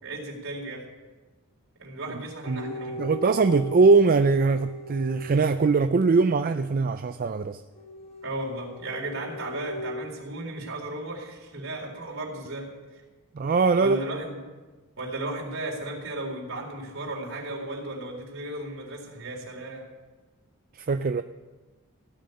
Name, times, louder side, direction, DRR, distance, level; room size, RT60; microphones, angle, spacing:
voice 1, 0.0-0.9 1.8-3.1 8.2-13.0 13.8-14.4 15.0-19.9, right 1 dB, 60° right, 4.1 m, -35 dB
sound 1, 2.4-6.4 7.8-9.9, equal, 25° left, 1.6 m, -39 dB
voice 2, 3.0-7.6 13.3-14.0 20.8-21.2, right 4 dB, 40° right, 0.4 m, -21 dB
16.5 x 6.6 x 9.8 m
head